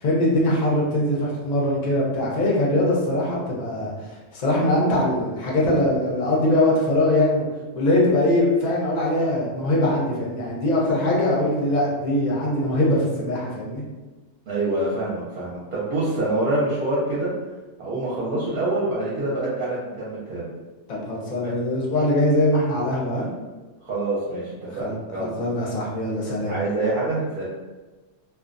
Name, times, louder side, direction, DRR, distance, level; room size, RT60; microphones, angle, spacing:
voice 1, 0.0-3.9 4.3-7.5 7.7-13.8 20.9-23.2 24.7-26.5, left 1 dB, 50° left, -4 dB, 0.5 m, -22 dB
voice 2, 14.5-17.3 17.8-20.5 21.4-21.5 23.8-25.3 26.4-27.4, right 2 dB, 55° right, -8 dB, 0.7 m, -26 dB
2.3 x 2.2 x 2.5 m, 1.2 s
omnidirectional pair, 1.3 m